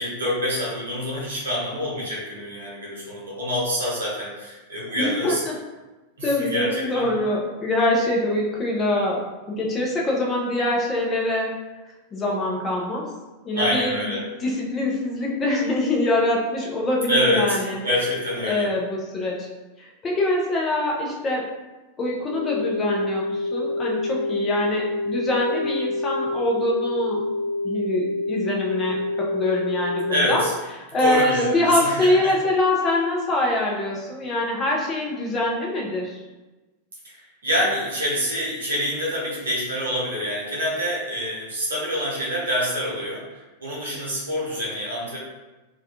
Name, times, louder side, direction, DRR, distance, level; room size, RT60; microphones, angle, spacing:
voice 1, 0.0-5.4 6.2-7.1 13.5-14.2 17.1-18.7 30.1-30.5 31.0-32.3 37.1-45.2, equal, 70° right, -5 dB, 0.7 m, -26 dB
voice 2, 4.9-5.5 6.2-9.2 9.5-11.5 12.1-13.1 13.4-17.8 18.4-19.5 19.8-21.5 22.0-27.2 27.6-30.4 30.9-36.2, left 1 dB, 25° left, -3 dB, 0.6 m, -24 dB
sound 1, 22.3-30.2, left 2 dB, 65° left, 0.9 m, -27 dB
2.3 x 2.2 x 2.7 m, 1.1 s
figure-of-eight pair, 90°, 0 cm